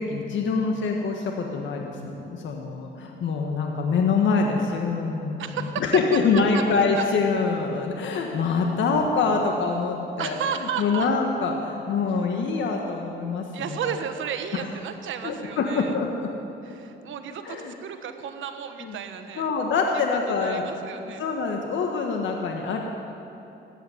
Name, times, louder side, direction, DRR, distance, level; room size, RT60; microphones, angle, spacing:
voice 1, 0.0-10.4 10.8-13.9 14.5-14.6 15.2-16.3 17.4-17.7 18.8-18.9 19.4-20.7 21.0-22.8, left 4 dB, 70° left, 2 dB, 1.5 m, -25 dB
voice 2, 5.4-5.8 6.5-6.6 7.0-7.1 10.2-11.1 13.5-15.9 16.6-19.5 20.2-21.2, right 8 dB, 75° right, 7 dB, 1.3 m, -33 dB
15.0 x 9.3 x 9.1 m, 2.9 s
cardioid pair, 90°, 20 cm